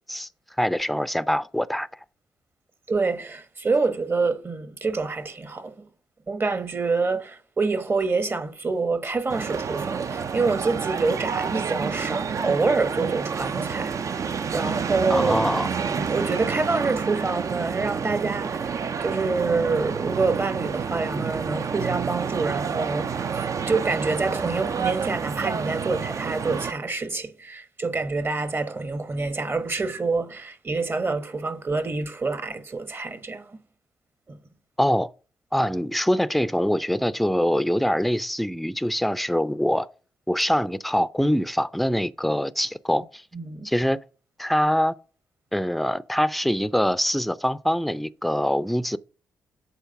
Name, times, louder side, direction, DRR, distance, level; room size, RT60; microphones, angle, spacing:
voice 1, 0.6-1.9 15.1-15.7 34.8-35.1 35.5-39.9 40.3-43.2 43.6-44.0 44.4-44.9 45.5-49.0, equal, ahead, 0.5 m, -24 dB
voice 2, 2.9-5.9 6.3-15.4 15.9-33.6 34.3-34.4 43.3-43.7, right 3 dB, 35° right, 1.1 m, -27 dB
sound 1, 9.3-26.7, right 6 dB, 50° right, 0.5 m, -29 dB
8.2 x 3.9 x 4.8 m
hypercardioid pair, 45°, 7 cm